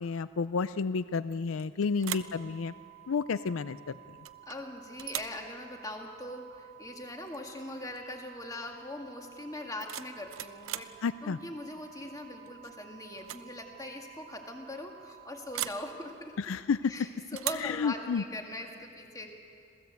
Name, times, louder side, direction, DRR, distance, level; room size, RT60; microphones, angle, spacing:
voice 1, 0.0-2.7 3.1-4.0 11.0-11.4 16.4-16.9 17.6-18.2, left 5 dB, 65° left, 15 dB, 0.4 m, -31 dB
sound 1, 1.3-1.7 2.0-2.4 4.2-4.6 5.0-5.4 7.3-7.4 7.8-8.1 9.6-11.0 12.5-12.8 13.1-13.5 13.7-13.8 15.5-15.9 17.4-17.8, right 12 dB, 70° right, 0.7 m, -39 dB
sound 2, 2.1-16.1, right 16 dB, 45° right, 1.4 m, -53 dB
voice 2, 4.4-16.3 16.9-19.3, left 1 dB, 15° left, 2 dB, 2.0 m, -41 dB
27.0 x 17.0 x 8.2 m, 2.6 s
head